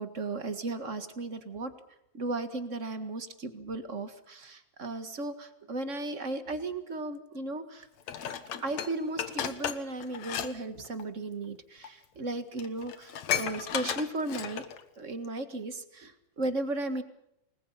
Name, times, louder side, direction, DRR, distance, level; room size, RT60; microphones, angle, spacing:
voice 1, 0.0-1.7 2.1-7.9 8.6-17.0, right 2 dB, 30° right, 9 dB, 1.5 m, -35 dB
Dishes pots and pans, 8.1-10.5 10.8-11.0 11.8-11.9 12.3-12.4 12.6-14.8 15.2-15.3, left 9 dB, 70° left, 2.7 m, -34 dB
28.0 x 21.0 x 5.7 m, 0.79 s
omnidirectional pair, 3.3 m